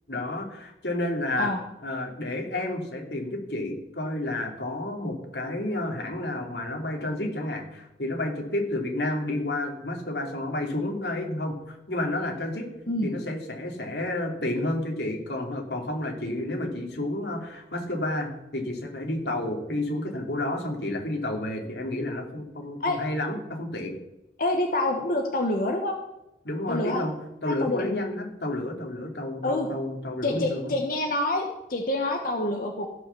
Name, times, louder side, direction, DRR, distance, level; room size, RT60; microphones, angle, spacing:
voice 1, 0.1-1.5 1.8-12.7 13.0-23.9 26.4-27.1 27.4-30.7, left 1 dB, 70° left, 2 dB, 2.8 m, -30 dB
voice 2, 24.4-26.0 26.7-27.0 27.5-27.9 29.4-29.7 30.2-32.9, left 2 dB, 50° left, 2 dB, 1.2 m, -27 dB
15.0 x 5.8 x 6.9 m, 0.92 s
head